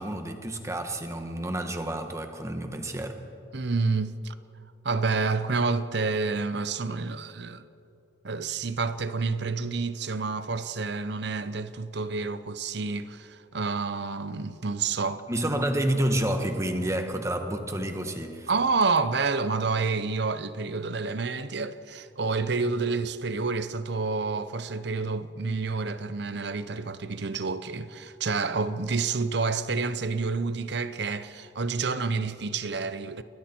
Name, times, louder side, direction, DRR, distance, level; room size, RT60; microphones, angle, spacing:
voice 1, 0.0-3.2 15.3-18.5, right 1 dB, 15° right, 1.4 m, -29 dB
voice 2, 3.5-4.3 4.8-7.6 8.2-15.2 18.5-33.2, right 4 dB, 60° right, 0.8 m, -29 dB
29.5 x 21.5 x 4.5 m
head